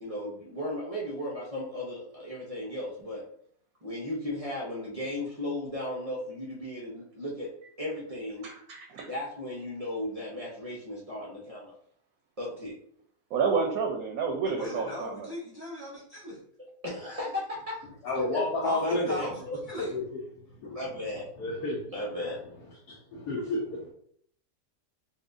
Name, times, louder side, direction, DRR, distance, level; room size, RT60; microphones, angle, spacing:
voice 1, 0.0-3.2 3.8-8.5 9.0-11.7 12.4-12.8 16.8-17.9 18.3-18.4 18.8-19.6 20.6-21.2 21.9-22.4, left 1 dB, 55° right, -4 dB, 0.4 m, -35 dB
voice 2, 8.4-9.1 13.3-15.3, right 5 dB, 70° right, 2 dB, 0.9 m, -30 dB
voice 3, 14.4-16.4 18.6-19.3 19.7-19.9, left 1 dB, 30° left, -8 dB, 1.5 m, -36 dB
voice 4, 18.0-19.2 19.9-20.0 20.6-20.8 21.4-21.9 22.9-23.9, left 2 dB, 80° left, -4 dB, 1.3 m, -31 dB
4.2 x 2.4 x 2.5 m, 0.63 s
omnidirectional pair, 1.7 m